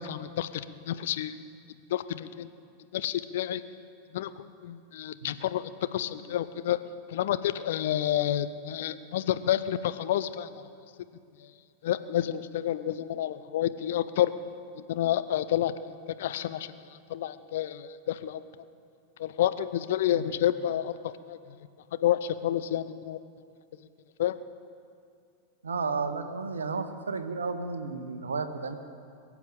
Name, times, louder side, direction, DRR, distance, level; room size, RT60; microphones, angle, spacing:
voice 1, 0.0-1.5 1.9-2.5 2.9-3.6 4.1-6.8 7.1-10.6 11.8-14.3 14.7-16.7 17.1-18.4 19.2-21.4 22.0-23.2 24.2-24.4, left 11 dB, 55° left, 12 dB, 0.6 m, -29 dB
voice 2, 25.6-28.7, right 4 dB, 70° right, 9 dB, 1.1 m, -32 dB
21.5 x 7.2 x 8.8 m, 2.3 s
figure-of-eight pair, 90°, 0 cm